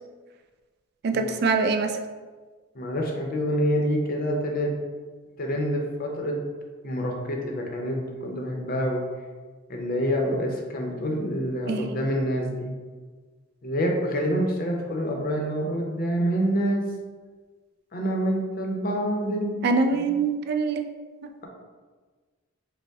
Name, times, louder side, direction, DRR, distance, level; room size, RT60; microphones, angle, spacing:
voice 1, 1.0-2.0 11.7-12.0 19.6-20.9, right 4 dB, 50° right, 6 dB, 0.3 m, -24 dB
voice 2, 2.7-4.7 5.4-6.4 6.8-9.0 9.7-12.7 13.6-16.8 17.9-19.6 19.9-20.1, equal, 45° left, 1 dB, 0.6 m, -27 dB
5.2 x 2.1 x 3.5 m, 1.4 s
head